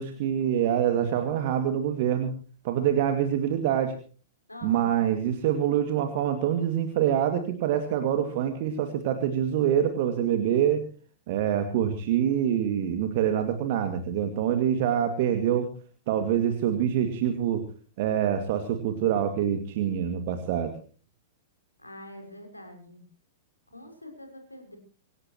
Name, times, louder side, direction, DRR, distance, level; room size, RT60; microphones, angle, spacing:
voice 1, 0.0-2.3 2.6-4.0 4.6-10.8 11.3-15.7 16.1-17.6 18.0-20.8, right 9 dB, 45° right, 7 dB, 2.2 m, -25 dB
voice 2, 4.5-5.0 21.8-23.0 23.7-24.8, left 1 dB, 85° left, 5 dB, 6.3 m, -45 dB
26.0 x 17.5 x 3.0 m, 0.39 s
figure-of-eight pair, 100°, 0 cm